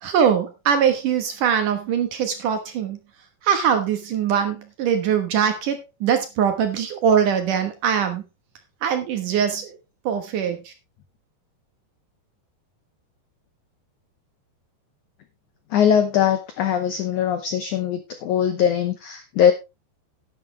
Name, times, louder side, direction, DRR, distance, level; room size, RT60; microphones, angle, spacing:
voice 1, 0.0-3.0 3.4-8.2 8.8-9.8 10.0-10.7, right 8 dB, 65° right, 7 dB, 2.3 m, -22 dB
voice 2, 15.7-19.5, left 8 dB, 85° left, 9 dB, 1.7 m, -21 dB
11.5 x 10.5 x 3.2 m, 0.24 s
omnidirectional pair, 4.9 m